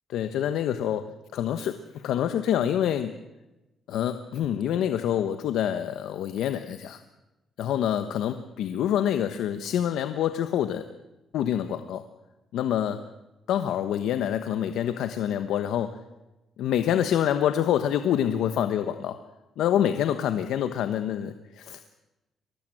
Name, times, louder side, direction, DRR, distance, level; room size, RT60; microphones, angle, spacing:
voice 1, 0.1-1.1 1.3-3.1 3.9-7.0 7.6-10.9 11.3-12.1 12.5-13.0 13.5-16.0 16.6-19.2 19.6-21.9, left 10 dB, 80° left, 10 dB, 1.1 m, -26 dB
23.5 x 18.5 x 7.8 m, 1.0 s
cardioid pair, 90°, 0 cm